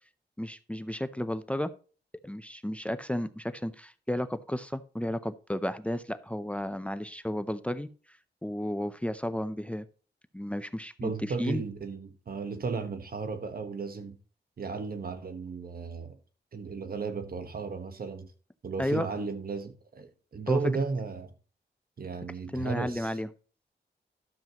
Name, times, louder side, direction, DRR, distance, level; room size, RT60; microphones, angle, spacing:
voice 1, 0.4-1.7 2.2-9.9 10.3-11.1 11.4-11.6 18.8-19.1 20.5-20.6 22.5-23.3, left 1 dB, 5° left, 0.6 m, -33 dB
voice 2, 11.0-14.2 14.6-16.2 16.5-18.3 18.6-21.3 22.0-23.2, right 4 dB, 55° right, 1.2 m, -34 dB
12.0 x 7.4 x 3.0 m
cardioid pair, 75°, 18 cm